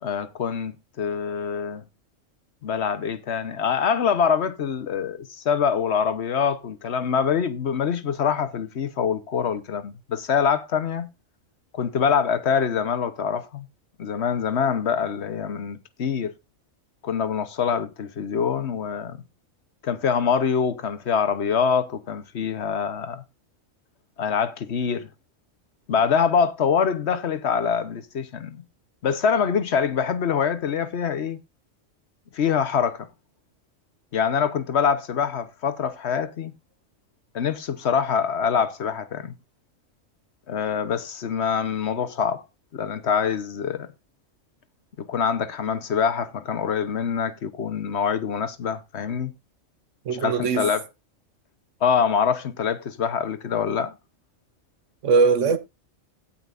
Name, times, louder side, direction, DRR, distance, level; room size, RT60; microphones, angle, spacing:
voice 1, 0.0-1.8 2.6-11.1 11.7-13.7 14.0-16.3 17.0-19.2 19.8-23.2 24.2-25.1 25.9-28.6 29.0-31.4 32.3-33.1 34.1-36.5 37.3-39.3 40.5-42.4 42.7-43.9 45.0-49.3 50.2-50.8 51.8-53.9, left 7 dB, 55° left, 1.3 m, -25 dB
voice 2, 50.0-50.7 55.0-55.6, right 5 dB, 70° right, 1.3 m, -20 dB
17.5 x 5.8 x 2.6 m
omnidirectional pair, 1.3 m